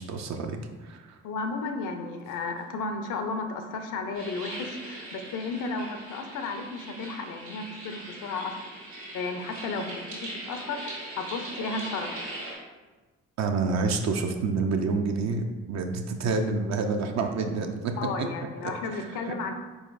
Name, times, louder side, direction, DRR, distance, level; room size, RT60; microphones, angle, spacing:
voice 1, 0.0-1.2 13.4-17.9 18.6-19.4, right 4 dB, 45° right, 4 dB, 0.6 m, -28 dB
voice 2, 1.2-8.5 9.1-12.1 18.0-19.6, left 4 dB, 55° left, 6 dB, 0.6 m, -33 dB
sound 1, 4.1-12.6, right 1 dB, 80° right, 1.4 m, -40 dB
4.4 x 3.9 x 2.5 m, 1.3 s
hypercardioid pair, 50°, 38 cm